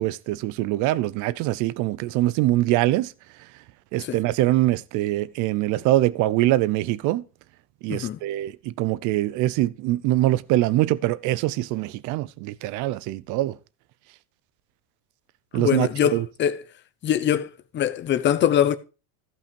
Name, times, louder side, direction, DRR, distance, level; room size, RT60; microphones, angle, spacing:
voice 1, 0.0-3.1 3.9-7.2 7.8-13.5 15.5-16.3, right 16 dB, 40° right, 0.6 m, -23 dB
voice 2, 7.9-8.2 15.5-16.6 17.0-18.8, left 10 dB, 25° left, 0.7 m, -23 dB
14.5 x 5.6 x 5.3 m
cardioid pair, 160°, 49 cm